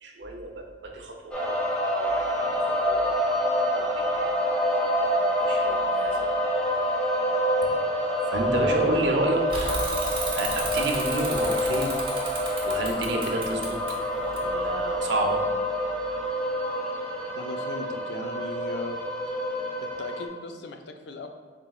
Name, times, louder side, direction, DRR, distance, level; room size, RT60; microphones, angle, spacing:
voice 1, 0.0-1.6 2.0-3.1 3.8-4.3 4.9-6.3 8.3-9.4 10.4-11.9 12.6-13.8 14.1-15.4, right 2 dB, 85° right, 2 dB, 0.6 m, -30 dB
sound 1, 1.3-20.3, equal, 5° left, 0.5 m, -27 dB
Bicycle / Mechanisms, 9.5-15.0, right 2 dB, 30° right, 0.9 m, -34 dB
voice 2, 17.4-19.0 19.8-21.3, left 3 dB, 75° left, 5 dB, 0.4 m, -38 dB
4.4 x 3.9 x 2.3 m, 1.4 s
head